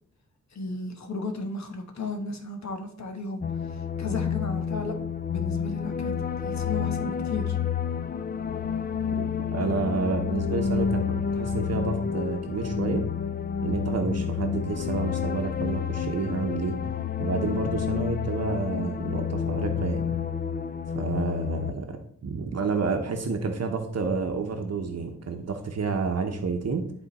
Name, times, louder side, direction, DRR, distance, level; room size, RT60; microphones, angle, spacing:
voice 1, 0.5-4.9 5.3-7.6, left 3 dB, 65° left, 5 dB, 1.2 m, -34 dB
sound 1, 3.4-21.7, left 7 dB, 30° left, 0.4 m, -29 dB
voice 2, 9.5-13.1 13.6-16.8 17.2-20.0 20.9-26.9, right 4 dB, 55° right, 4 dB, 0.8 m, -29 dB
11.0 x 3.9 x 4.1 m, 0.63 s
wide cardioid pair, 165°, 30 cm